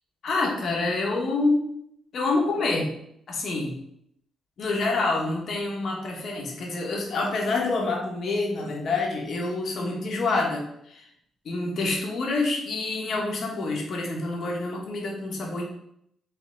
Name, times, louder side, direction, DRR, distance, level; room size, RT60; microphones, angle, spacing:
voice 1, 0.2-1.6 2.1-2.9 3.3-3.8 4.6-11.0 11.4-15.7, left 3 dB, 60° left, -1 dB, 1.4 m, -27 dB
3.9 x 3.5 x 3.7 m, 0.73 s
supercardioid pair, 55°, 0 cm